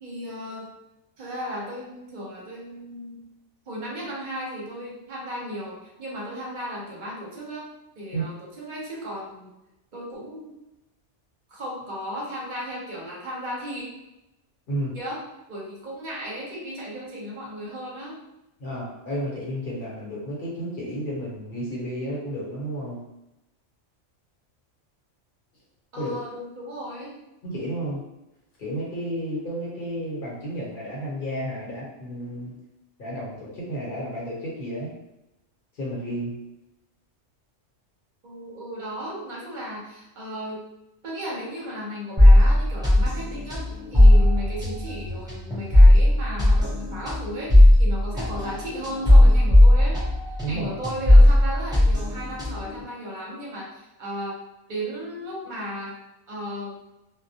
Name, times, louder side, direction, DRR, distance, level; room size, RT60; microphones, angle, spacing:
voice 1, 0.0-0.7 1.2-3.2 3.7-7.7 8.0-9.5 9.9-10.5 11.5-13.8 14.9-15.2 15.5-18.2 25.9-27.1 38.2-40.6 41.0-43.6 43.9-50.0 50.4-54.4 54.7-56.0 56.3-56.8, equal, 50° right, -4 dB, 0.7 m, -35 dB
voice 2, 18.6-23.0 26.0-26.2 27.4-28.0 28.6-32.5 33.0-34.9 35.8-36.4 43.9-44.0 50.4-50.7, right 1 dB, 50° left, -5 dB, 1.0 m, -32 dB
sound 1, 42.2-50.6 50.8-52.8, left 1 dB, 5° right, 0.3 m, -16 dB
2.2 x 2.1 x 2.7 m, 0.91 s
omnidirectional pair, 1.2 m